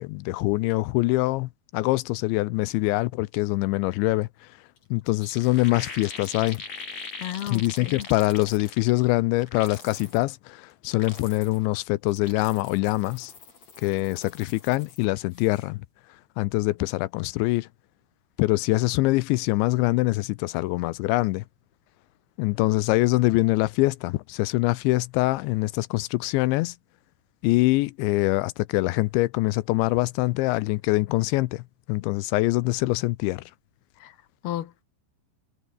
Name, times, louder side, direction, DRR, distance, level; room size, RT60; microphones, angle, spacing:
voice 1, 0.0-4.3 4.9-6.6 7.5-13.3 13.8-15.8 16.4-17.7 18.4-21.4 22.4-26.7 27.4-33.4, left 20 dB, 85° left, 2.9 m, -24 dB
sound 1, 4.8-4.9 5.1-9.1 9.4-10.2 10.7-11.7 12.0-15.0 15.3-15.7, left 5 dB, 35° left, 5.0 m, -42 dB
voice 2, 7.2-8.1 34.0-34.1 34.4-34.8, left 12 dB, 65° left, 3.3 m, -33 dB
omnidirectional pair, 5.4 m